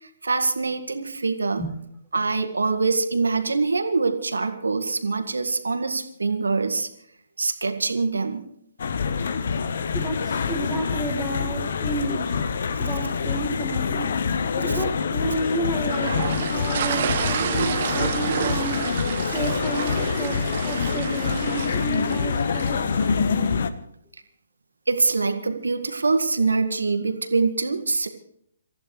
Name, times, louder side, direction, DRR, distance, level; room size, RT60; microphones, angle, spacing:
voice 1, 0.2-1.6 2.1-6.9 7.4-8.4 14.7-14.8 24.9-28.1, right 4 dB, 75° right, 7 dB, 1.8 m, -24 dB
sound 1, 8.8-23.7, left 5 dB, 55° left, 1.1 m, -26 dB
voice 2, 9.9-12.4 12.8-14.1 14.6-18.8 19.3-23.0, right 2 dB, ahead, -5 dB, 2.1 m, -31 dB
sound 2, 15.9-23.2, right 8 dB, 45° right, 1.2 m, -30 dB
27.5 x 14.5 x 3.3 m, 0.71 s
figure-of-eight pair, 135°, 0 cm